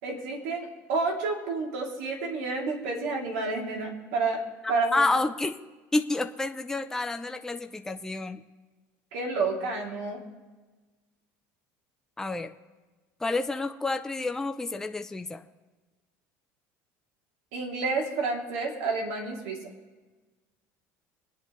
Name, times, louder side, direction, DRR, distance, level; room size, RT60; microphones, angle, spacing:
voice 1, 0.0-4.4 4.7-5.1 9.1-10.2 17.5-19.6, right 3 dB, 85° right, -1 dB, 2.8 m, -30 dB
voice 2, 4.9-5.6 5.9-8.4 12.2-12.5 13.2-15.4, left 2 dB, 5° left, 6 dB, 0.5 m, -29 dB
25.5 x 9.3 x 3.1 m, 1.3 s
cardioid pair, 135°, 7 cm